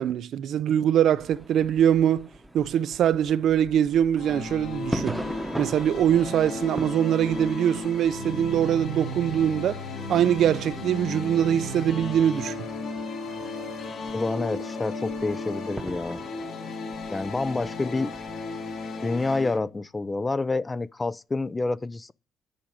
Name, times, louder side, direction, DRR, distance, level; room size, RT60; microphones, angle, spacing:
voice 1, 0.0-2.3 2.5-5.2 5.6-9.8 10.1-12.6, right 10 dB, 70° right, 0.5 m, -23 dB
sound 1, 1.2-18.4, right 1 dB, 5° right, 0.9 m, -41 dB
sound 2, 4.2-19.6, left 2 dB, 75° left, 3.7 m, -35 dB
voice 2, 14.1-16.2 17.1-18.1 19.0-22.1, left 3 dB, 20° left, 0.4 m, -28 dB
10.0 x 5.2 x 7.5 m
cardioid pair, 155°, 0 cm